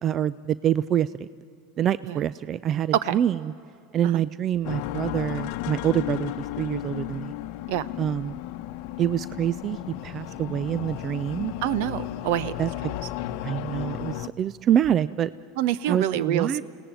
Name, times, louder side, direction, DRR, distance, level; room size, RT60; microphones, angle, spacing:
voice 1, 0.0-1.3 1.8-3.4 3.9-7.3 8.0-8.4 9.0-9.8 10.0-11.5 12.6-12.7 13.4-15.3 15.9-16.6, right 10 dB, 40° right, 18 dB, 0.5 m, -26 dB
sound 1, 4.6-14.3, left 14 dB, 65° left, 0.9 m, -34 dB
voice 2, 11.6-12.5 15.6-16.6, right 11 dB, 65° right, 18 dB, 0.8 m, -26 dB
29.0 x 18.0 x 9.0 m, 2.9 s
hypercardioid pair, 95°, 0 cm